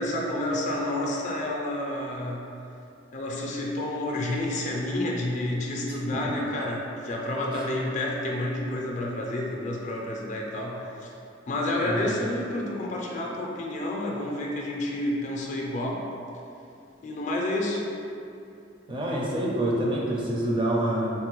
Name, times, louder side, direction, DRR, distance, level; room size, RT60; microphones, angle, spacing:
voice 1, 0.0-2.5 3.1-11.1 11.5-16.1 17.0-17.8, left 1 dB, 40° left, -2 dB, 0.4 m, -29 dB
voice 2, 11.8-12.2 18.9-21.1, right 1 dB, 25° right, -3 dB, 0.5 m, -27 dB
3.6 x 2.2 x 2.9 m, 2.7 s
head